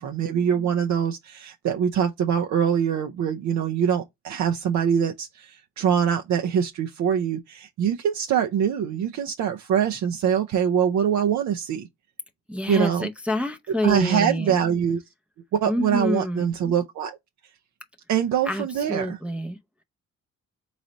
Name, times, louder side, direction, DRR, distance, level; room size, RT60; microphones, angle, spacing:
voice 1, 0.0-11.9 12.7-13.1 13.8-15.0 15.5-17.2 18.1-19.2, right 8 dB, 65° right, 0.6 m, -24 dB
voice 2, 12.5-14.6 15.7-16.5 18.5-19.6, left 1 dB, 5° right, 0.5 m, -27 dB
4.0 x 3.2 x 3.8 m
cardioid pair, 90°, 30 cm